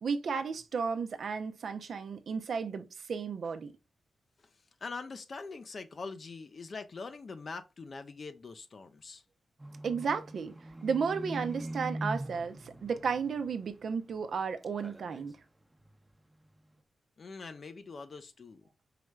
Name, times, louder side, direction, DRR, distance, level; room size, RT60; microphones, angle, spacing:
voice 1, 0.0-3.7 9.8-10.5 10.8-15.4, right 5 dB, 70° right, 0.6 m, -33 dB
voice 2, 4.4-9.2 17.2-18.7, left 4 dB, 60° left, 0.7 m, -43 dB
Livestock farm animals working animals, 9.6-14.4 14.6-15.3 15.8-15.9, right 1 dB, 20° right, 0.8 m, -42 dB
4.9 x 3.1 x 2.3 m
supercardioid pair, 45°, 0 cm